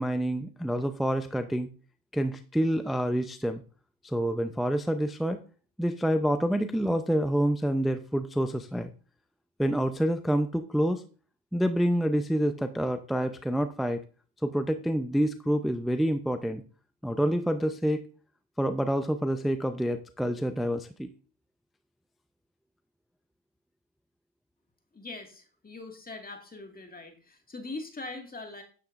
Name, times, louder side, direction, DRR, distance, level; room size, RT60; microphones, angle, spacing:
voice 1, 0.0-1.7 2.1-3.6 4.0-5.4 5.8-8.9 9.6-11.0 11.5-14.0 14.4-16.6 17.0-18.0 18.6-21.1, equal, ahead, 8 dB, 0.6 m, -27 dB
voice 2, 24.9-28.6, left 3 dB, 20° left, 3 dB, 2.0 m, -42 dB
10.0 x 9.5 x 2.5 m, 0.39 s
supercardioid pair, 85°, 43 cm